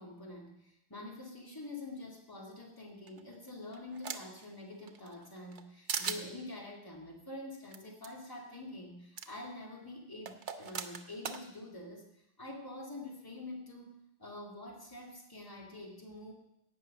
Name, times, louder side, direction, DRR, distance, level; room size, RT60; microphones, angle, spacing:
voice 1, 0.0-12.1 12.4-16.3, left 2 dB, 20° left, -1 dB, 2.3 m, -46 dB
sound 1, 3.1-4.4 4.9-5.6 5.9-6.2 7.7-7.8 8.0-8.1 9.2-9.3 10.3-11.4, right 7 dB, 75° right, 1.2 m, -39 dB
17.5 x 6.2 x 6.5 m, 0.81 s
omnidirectional pair, 1.2 m